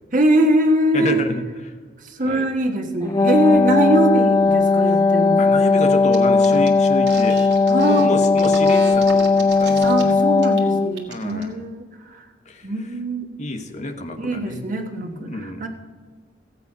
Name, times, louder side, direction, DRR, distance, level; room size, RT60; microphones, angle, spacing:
voice 1, 0.1-1.2 2.0-5.4 6.5-6.7 7.7-8.1 9.8-12.2 12.6-13.4 14.2-15.7, right 1 dB, 50° right, 3 dB, 1.2 m, -22 dB
voice 2, 0.9-1.7 2.2-2.5 3.5-3.9 4.9-5.0 5.4-7.4 7.9-10.2 11.1-11.6 12.5-12.7 13.4-14.6 15.0-15.7, left 2 dB, 40° left, 6 dB, 1.0 m, -29 dB
Wind instrument woodwind instrument, 3.0-11.0, left 4 dB, 20° left, 0.3 m, -17 dB
sound 1, 6.1-6.2 6.4-10.0 10.4-10.6 10.9-11.4, right 4 dB, 70° right, 1.6 m, -35 dB
15.0 x 8.4 x 5.4 m, 1.5 s
head